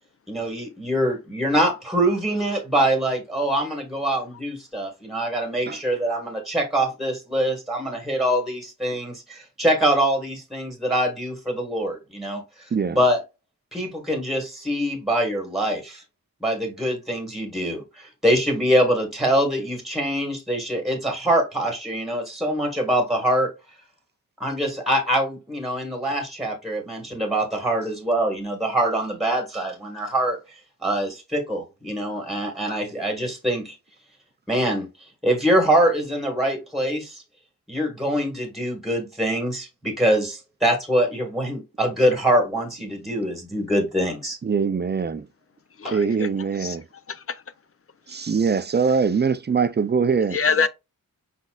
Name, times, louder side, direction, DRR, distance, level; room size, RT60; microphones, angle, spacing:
voice 1, 0.3-12.4 12.9-13.2 13.7-16.0 16.4-23.5 24.4-30.4 30.8-33.7 34.5-34.9 35.2-37.2 37.7-44.4, right 1 dB, ahead, 1.4 m, -24 dB
voice 2, 44.4-45.3 45.9-46.9 48.1-50.4, right 5 dB, 30° right, 0.4 m, -23 dB
voice 3, 45.8-46.3 46.6-46.8 47.1-47.4 48.1-48.2 50.3-50.7, left 5 dB, 40° left, 0.5 m, -25 dB
5.4 x 4.0 x 2.3 m
wide cardioid pair, 125°, 35 cm